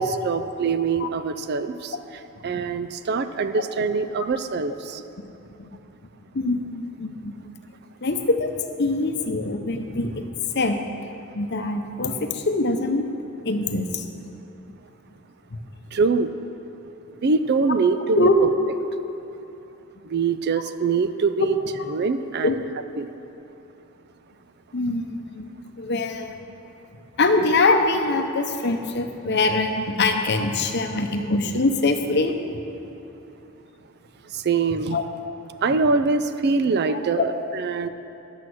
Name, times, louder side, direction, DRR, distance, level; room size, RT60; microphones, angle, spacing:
voice 1, 0.0-2.0 2.4-5.0 15.9-16.3 17.2-18.5 20.1-21.6 21.9-22.6 23.0-23.1 34.3-35.0 35.6-37.9, right 4 dB, 50° right, 10 dB, 0.4 m, -24 dB
voice 2, 6.3-7.3 8.0-8.5 8.8-10.3 10.5-10.8 11.3-13.1 13.4-14.1 15.5-15.6 18.1-18.3 21.8-21.9 22.4-22.5 24.7-25.5 25.8-26.4 27.2-32.4 34.9-35.1 36.9-37.2, left 3 dB, 50° left, 6 dB, 0.8 m, -23 dB
11.5 x 7.4 x 6.2 m, 2.8 s
head